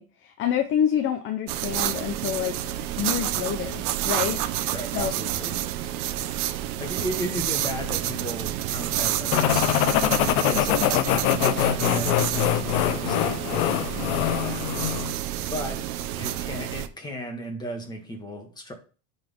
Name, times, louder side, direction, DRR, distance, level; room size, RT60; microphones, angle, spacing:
voice 1, 0.0-2.6 3.0-4.4 4.9-5.1 11.4-11.5, left 9 dB, 30° left, 0.5 m, -27 dB
sound 1, 1.5-16.9, right 13 dB, 85° right, 0.9 m, -29 dB
voice 2, 4.7-5.6 6.8-9.7 10.4-14.7 15.4-15.8 16.2-18.7, equal, 10° left, 1.6 m, -36 dB
sound 2, 9.3-15.1, left 12 dB, 75° left, 0.9 m, -23 dB
10.5 x 4.1 x 3.6 m
supercardioid pair, 150°, 43 cm